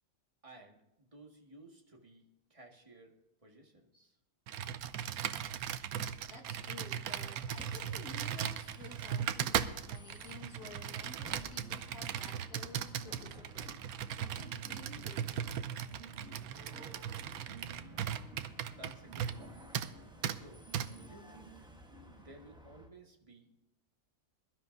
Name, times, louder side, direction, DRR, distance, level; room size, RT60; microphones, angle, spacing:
voice 1, 0.4-2.2 2.5-3.1 3.4-4.1 17.7-18.2 18.7-19.8 20.3-20.6 21.0-21.5 22.1-23.5, right 1 dB, 20° right, 1 dB, 1.7 m, -56 dB
Computer keyboard, 4.5-19.5 19.7-19.9 20.2-20.4 20.7-20.9, right 9 dB, 75° right, 1.1 m, -38 dB
sound 1, 6.1-22.2, right 2 dB, 50° right, 1.5 m, -58 dB
voice 2, 6.3-13.7 14.2-15.5, left 3 dB, 70° left, 0 dB, 2.1 m, -52 dB
Bus, 7.5-22.9, right 1 dB, 5° right, 0.9 m, -56 dB
22.0 x 12.0 x 2.6 m, 0.91 s
omnidirectional pair, 1.7 m